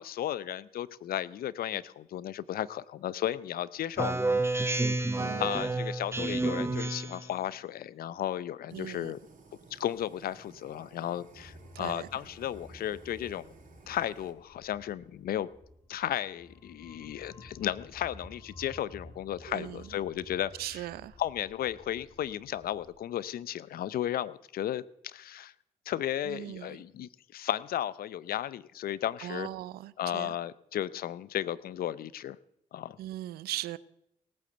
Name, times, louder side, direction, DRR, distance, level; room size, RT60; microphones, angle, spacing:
voice 1, 0.0-4.1 4.4-4.8 5.4-9.2 9.7-13.5 13.9-15.5 15.9-20.9 21.2-25.5 25.9-29.5 30.0-32.4 32.7-33.0, left 11 dB, 75° left, 0.7 m, -34 dB
Speech synthesizer, 4.0-7.3, right 2 dB, 15° right, 1.3 m, -30 dB
voice 2, 5.1-5.6 8.7-9.1 11.7-12.1 19.5-19.8 20.6-21.2 26.2-26.8 29.2-30.3 33.0-33.8, right 15 dB, 85° right, 0.6 m, -39 dB
Fire, 8.7-14.3, right 4 dB, 55° right, 4.6 m, -56 dB
sound 1, 11.3-22.9, left 1 dB, 35° left, 4.7 m, -53 dB
18.0 x 8.8 x 7.8 m
supercardioid pair, 50°, 16 cm